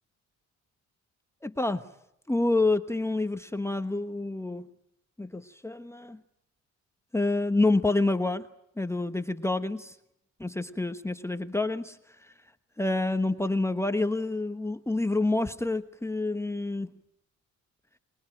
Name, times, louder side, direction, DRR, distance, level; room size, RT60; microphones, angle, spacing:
voice 1, 1.4-1.8 2.3-4.7 5.2-6.2 7.1-8.4 8.8-9.9 10.4-12.0 12.2-12.3 12.8-16.9, left 2 dB, 10° left, 8 dB, 1.1 m, -28 dB
25.5 x 21.5 x 9.0 m, 0.79 s
cardioid pair, 90°, 30 cm